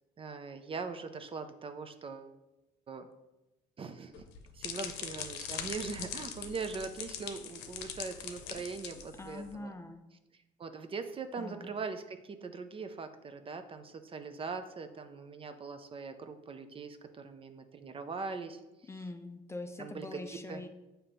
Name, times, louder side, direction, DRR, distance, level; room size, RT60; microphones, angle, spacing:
voice 1, 0.2-2.3 2.9-3.1 3.8-4.3 4.5-9.7 10.6-18.6 19.8-20.2 20.5-20.6, right 4 dB, 30° right, 9 dB, 0.5 m, -41 dB
sound 1, 4.1-9.5, left 8 dB, 90° left, 0.7 m, -42 dB
voice 2, 9.0-10.0 11.4-11.7 18.9-20.7, left 2 dB, 15° left, 6 dB, 0.5 m, -43 dB
7.2 x 2.9 x 5.1 m, 0.98 s
cardioid pair, 110°, 17 cm